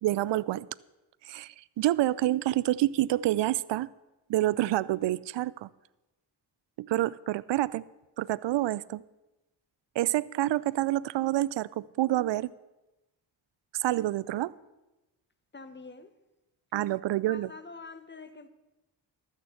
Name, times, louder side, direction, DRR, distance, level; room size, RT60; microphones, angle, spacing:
voice 1, 0.0-0.7 1.3-3.9 4.3-5.7 6.8-7.8 8.2-9.0 10.0-12.5 13.7-14.5 16.7-17.5, right 15 dB, 65° right, 0.5 m, -28 dB
voice 2, 15.5-16.1 17.1-18.5, left 4 dB, 25° left, 1.3 m, -46 dB
12.5 x 6.7 x 7.9 m
cardioid pair, 55°, 46 cm